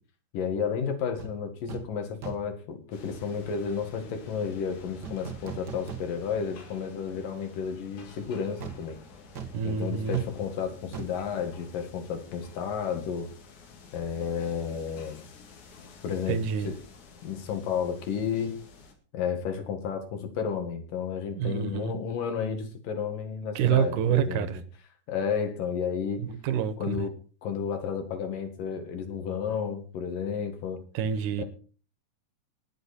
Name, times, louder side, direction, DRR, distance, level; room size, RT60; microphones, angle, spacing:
voice 1, 0.3-9.0 9.7-13.3 13.9-15.2 16.0-16.4 16.7-16.8 17.2-18.5 19.1-24.5 25.1-26.2 26.8-27.1 27.4-30.8 31.4-31.5, left 7 dB, 80° left, 3.6 m, -32 dB
sound 1, 1.2-1.3 1.7-1.9 2.2-2.6 5.0-6.5 6.8-6.9 8.6-12.3 12.5-12.7, right 6 dB, 50° right, 1.2 m, -41 dB
sound 2, 2.9-18.9, left 4 dB, 65° left, 3.3 m, -51 dB
voice 2, 9.5-10.2 16.3-16.7 21.3-22.0 23.6-24.6 26.2-27.1 30.9-31.4, right 9 dB, 75° right, 2.5 m, -27 dB
19.5 x 7.8 x 4.3 m
omnidirectional pair, 3.8 m